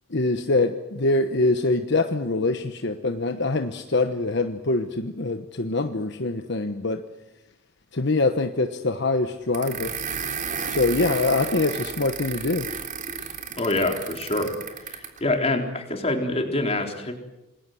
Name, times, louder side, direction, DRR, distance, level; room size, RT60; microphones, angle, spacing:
voice 1, 0.1-7.0 7.9-10.0 10.7-12.7, left 2 dB, 60° left, 7 dB, 1.1 m, -24 dB
sound 1, 9.5-15.2, right 6 dB, 40° right, 3.5 m, -33 dB
voice 2, 13.6-14.6 14.8-17.1, left 2 dB, 30° left, 3 dB, 3.8 m, -25 dB
27.5 x 20.5 x 7.9 m, 0.98 s
head